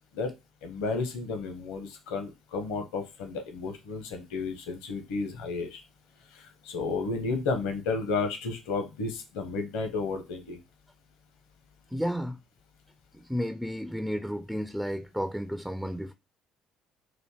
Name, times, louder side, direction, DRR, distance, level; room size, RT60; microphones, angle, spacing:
voice 1, 0.6-5.8 6.3-10.6, left 4 dB, 70° left, 1.0 m, -32 dB
voice 2, 11.9-12.4 13.1-16.1, equal, ahead, 0.4 m, -32 dB
4.1 x 2.6 x 4.8 m
figure-of-eight pair, 50°, 0 cm